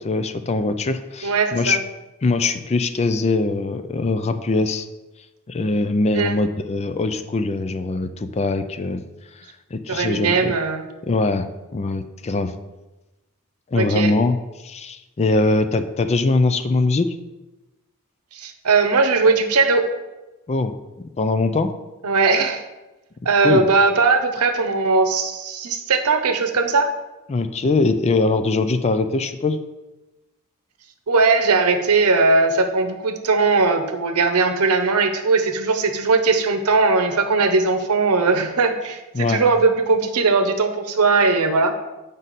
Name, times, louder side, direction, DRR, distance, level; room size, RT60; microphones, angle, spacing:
voice 1, 0.0-1.8 2.2-4.9 5.5-9.0 9.3-9.4 9.7-10.5 11.1-12.5 13.7-17.2 20.5-20.7 21.2-21.7 23.4-23.6 27.3-29.6 39.1-39.4, left 3 dB, 30° left, 10 dB, 0.4 m, -22 dB
voice 2, 1.2-1.8 6.1-6.4 9.9-10.9 13.7-14.1 18.3-19.9 22.0-22.6 23.2-26.9 31.1-41.8, right 4 dB, 85° right, 7 dB, 0.8 m, -19 dB
7.6 x 5.3 x 4.1 m, 1.1 s
head